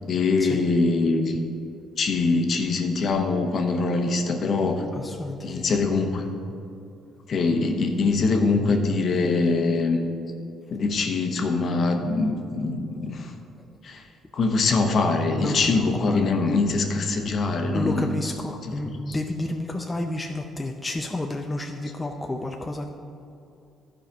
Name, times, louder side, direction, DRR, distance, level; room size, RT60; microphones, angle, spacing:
voice 1, 0.0-1.4 2.0-4.8 5.4-6.3 7.3-10.0 10.7-13.3 13.8-14.1 14.3-18.2 18.6-18.7 19.1-19.2, left 3 dB, 50° left, 5 dB, 1.0 m, -23 dB
voice 2, 4.9-5.6 15.4-16.3 17.7-22.9, left 2 dB, 15° left, 3 dB, 0.5 m, -30 dB
12.0 x 5.0 x 5.1 m, 2.7 s
cardioid pair, 105°, 0 cm